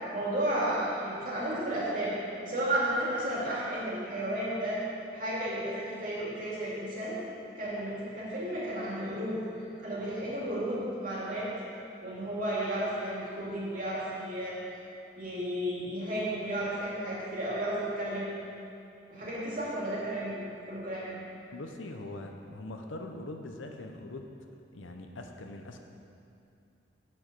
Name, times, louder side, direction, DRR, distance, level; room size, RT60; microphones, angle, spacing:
voice 1, 0.1-2.1 2.4-4.8 5.1-7.1 7.6-9.4 9.8-11.5 12.0-14.6 15.2-18.3 19.1-21.1, right 1 dB, 45° right, -7 dB, 2.4 m, -33 dB
voice 2, 21.5-24.3 24.7-25.8, left 2 dB, 85° left, 4 dB, 0.8 m, -42 dB
7.6 x 6.2 x 6.7 m, 2.6 s
head